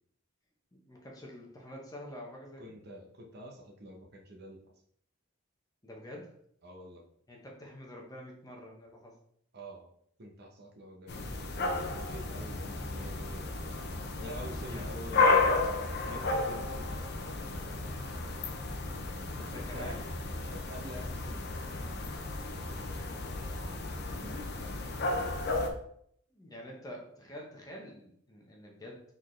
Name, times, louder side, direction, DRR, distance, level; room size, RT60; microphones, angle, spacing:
voice 1, 0.8-2.8 5.8-6.4 7.3-9.2 14.7-14.9 19.5-20.1 24.1-24.7 26.3-29.0, left 1 dB, 15° left, -1 dB, 0.9 m, -47 dB
voice 2, 2.6-4.6 6.6-7.0 9.5-9.9 10.2-13.5 14.2-15.6 16.0-17.1 19.3-20.1 20.5-21.4, equal, 50° right, 0 dB, 0.8 m, -47 dB
sound 1, 11.1-25.7, left 3 dB, 50° left, 0.6 m, -33 dB
4.2 x 3.9 x 3.2 m, 0.67 s
head